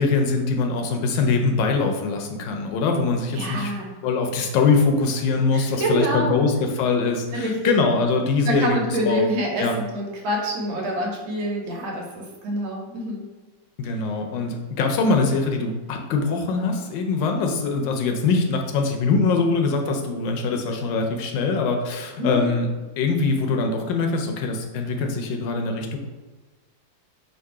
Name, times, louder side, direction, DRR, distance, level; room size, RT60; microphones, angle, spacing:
voice 1, 0.0-3.7 4.0-8.8 9.0-9.2 9.6-9.7 13.8-22.7 23.0-26.0, left 4 dB, 75° left, 3 dB, 1.2 m, -23 dB
voice 2, 3.3-3.9 5.5-6.4 7.3-7.7 8.4-13.3 22.2-22.5, equal, 85° right, -1 dB, 1.6 m, -26 dB
3.7 x 2.6 x 4.6 m, 1.3 s
omnidirectional pair, 2.1 m